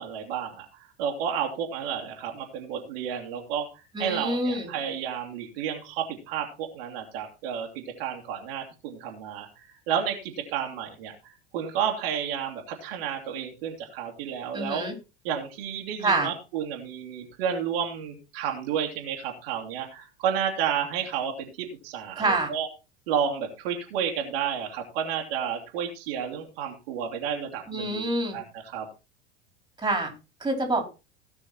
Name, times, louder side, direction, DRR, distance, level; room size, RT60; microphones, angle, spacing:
voice 1, 0.0-14.8 15.2-22.7 23.1-28.0 28.3-28.9, right 8 dB, 65° right, 2 dB, 2.7 m, -31 dB
voice 2, 3.9-4.7 14.5-14.9 16.0-16.3 22.2-22.5 27.7-28.4 29.8-30.1 30.4-30.9, right 2 dB, 15° right, 4 dB, 4.4 m, -26 dB
17.0 x 6.3 x 4.3 m, 0.30 s
figure-of-eight pair, 75°, 32 cm